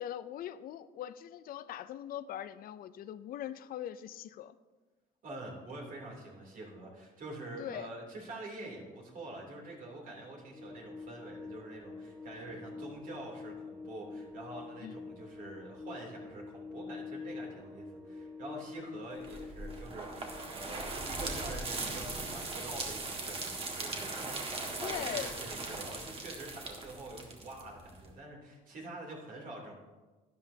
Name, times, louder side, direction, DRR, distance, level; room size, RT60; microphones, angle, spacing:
voice 1, 0.0-4.6 7.6-7.9 14.8-14.9 24.8-25.3, left 11 dB, 60° left, 14 dB, 0.5 m, -41 dB
voice 2, 5.2-29.7, right 2 dB, 55° right, -1 dB, 3.1 m, -46 dB
sound 1, 10.5-20.5, left 4 dB, ahead, 1.3 m, -46 dB
sound 2, 19.2-28.1, right 3 dB, 35° right, 1.7 m, -39 dB
12.0 x 10.5 x 2.8 m, 1.3 s
cardioid pair, 110°, 17 cm